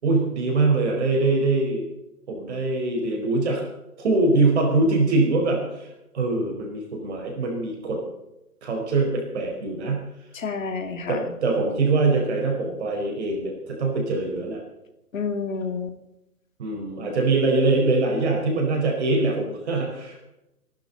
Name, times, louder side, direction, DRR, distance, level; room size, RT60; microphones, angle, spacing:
voice 1, 0.0-1.9 2.3-3.6 4.0-8.0 8.6-10.0 11.1-14.6 16.6-20.2, right 3 dB, 45° right, 1 dB, 5.0 m, -23 dB
voice 2, 10.3-11.2 15.1-16.0, left 5 dB, 55° left, 7 dB, 2.6 m, -29 dB
26.5 x 12.5 x 4.2 m, 0.91 s
figure-of-eight pair, 135°, 46 cm